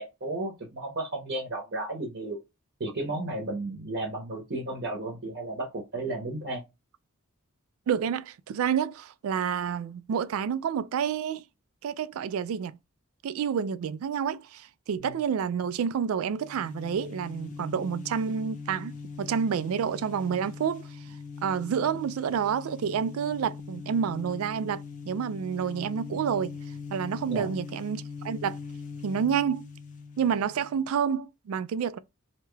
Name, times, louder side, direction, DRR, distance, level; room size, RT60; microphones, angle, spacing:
voice 1, 0.0-2.4 2.8-6.6 15.0-15.1 27.3-27.5, right 2 dB, 55° right, 0.8 m, -33 dB
voice 2, 7.9-11.4 11.8-12.8 13.2-18.9 19.2-20.9 21.4-26.5 26.9-28.6 29.0-29.7 30.2-32.0, right 7 dB, 85° right, 0.3 m, -29 dB
sound 1, 16.3-30.9, left 5 dB, 40° left, 0.5 m, -41 dB
2.9 x 2.3 x 3.1 m
head